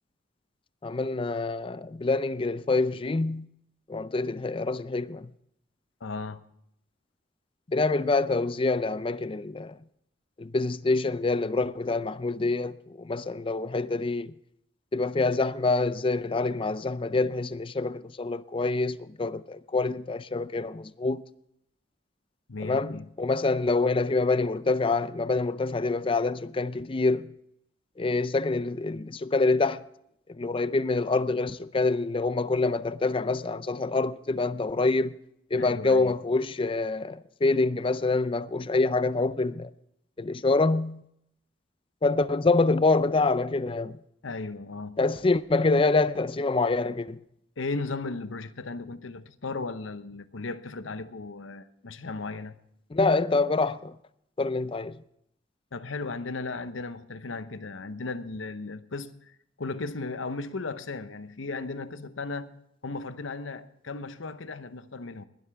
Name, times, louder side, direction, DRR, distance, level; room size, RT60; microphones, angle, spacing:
voice 1, 0.8-3.5 3.9-5.3 7.7-9.8 10.4-14.3 14.9-21.2 22.6-27.3 28.0-29.8 30.3-35.2 35.5-39.7 40.2-41.0 42.0-44.0 45.0-47.2 52.9-54.0 54.4-55.0, left 3 dB, 30° left, 0.5 m, -26 dB
voice 2, 6.0-6.4 22.5-23.1 35.6-36.1 44.2-45.0 47.6-52.6 55.7-62.5 62.8-65.3, left 3 dB, 90° left, 0.9 m, -36 dB
21.0 x 12.5 x 3.5 m
head